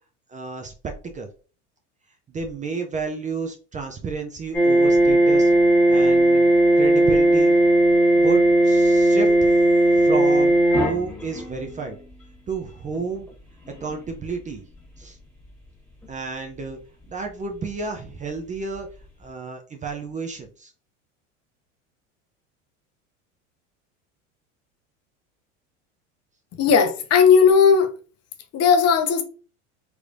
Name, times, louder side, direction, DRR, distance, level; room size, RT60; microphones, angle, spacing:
voice 1, 0.3-0.7 1.0-1.3 2.3-5.5 5.9-6.4 6.8-7.6 8.2-9.5 9.9-12.0 12.5-13.3 13.8-14.6 15.0-15.2 16.1-16.8 17.1-18.9 19.2-20.7, right 4 dB, 20° right, 0.5 m, -31 dB
sound 1, 4.5-11.9 12.9-13.2 13.6-14.0 16.0-16.1, right 1 dB, 5° left, 1.7 m, -17 dB
voice 2, 26.6-27.9 28.5-29.2, left 6 dB, 40° left, 0.8 m, -16 dB
3.2 x 3.1 x 2.5 m
hypercardioid pair, 100°, 37 cm